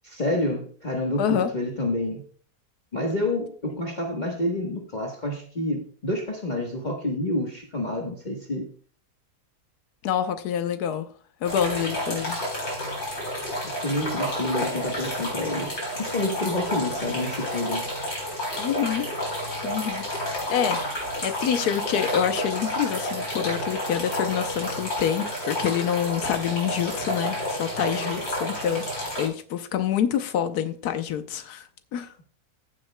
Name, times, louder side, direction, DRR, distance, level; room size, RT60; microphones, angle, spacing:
voice 1, 0.0-2.2 2.9-8.6 13.6-17.8, left 1 dB, 30° left, 1.3 m, -28 dB
voice 2, 1.2-1.5 10.0-11.1 11.4-12.4 18.6-19.1 19.6-20.0 20.5-28.9 29.2-32.1, left 9 dB, 85° left, 1.3 m, -27 dB
sound 1, 11.4-29.3, left 1 dB, 70° left, 4.8 m, -30 dB
15.5 x 7.6 x 2.2 m
omnidirectional pair, 1.6 m